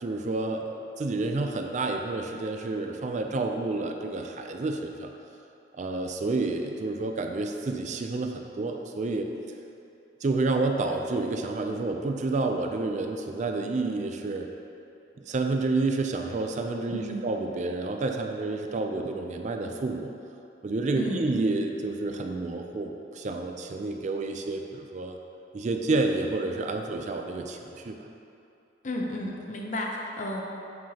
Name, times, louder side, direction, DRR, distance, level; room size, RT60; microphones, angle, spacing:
voice 1, 0.0-5.1 5.8-9.3 10.2-14.5 15.3-20.1 20.6-25.2 25.5-28.1, right 3 dB, 40° right, 4 dB, 0.4 m, -29 dB
voice 2, 16.9-17.3 21.0-21.3 28.8-30.4, left 1 dB, 45° left, 0 dB, 0.7 m, -33 dB
7.5 x 5.7 x 2.8 m, 2.7 s
head